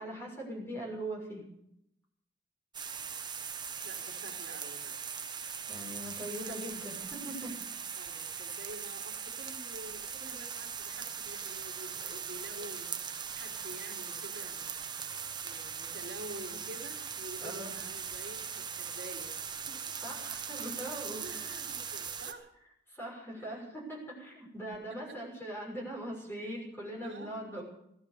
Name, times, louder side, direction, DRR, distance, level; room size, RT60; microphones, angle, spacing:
voice 1, 0.0-1.4 5.7-7.5 8.1-8.2 17.4-17.7 20.0-21.6 21.9-22.1 22.9-27.6, right 1 dB, 15° left, -2 dB, 6.3 m, -41 dB
sound 1, 2.7-22.3, right 7 dB, 25° right, 1.2 m, -40 dB
voice 2, 3.8-4.9 6.4-6.8 7.9-12.9 13.3-14.8 15.4-19.8 20.1-20.2 21.2-21.4 21.7-22.5 23.4-23.8 24.7-25.2 26.4-26.5 27.0-27.6, right 1 dB, 80° right, 0 dB, 3.0 m, -48 dB
16.5 x 13.0 x 6.8 m, 0.77 s
head